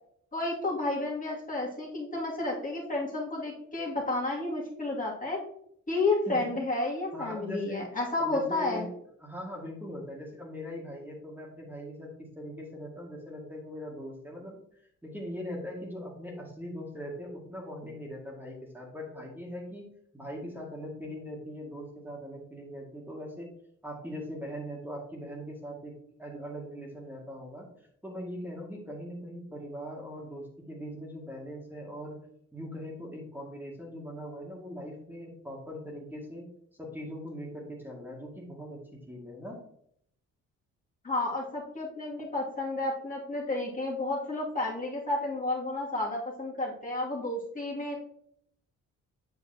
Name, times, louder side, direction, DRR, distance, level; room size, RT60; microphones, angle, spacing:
voice 1, 0.3-5.4 5.9-8.9 41.0-48.1, left 2 dB, 25° left, -3 dB, 2.4 m, -31 dB
voice 2, 7.1-12.1 12.4-14.6 15.0-19.8 20.1-23.5 23.8-25.9 26.2-27.7 28.0-32.2 32.5-36.5 36.8-39.6, equal, 5° right, -2 dB, 2.1 m, -41 dB
7.9 x 6.5 x 2.8 m, 0.69 s
cardioid pair, 90°, 30 cm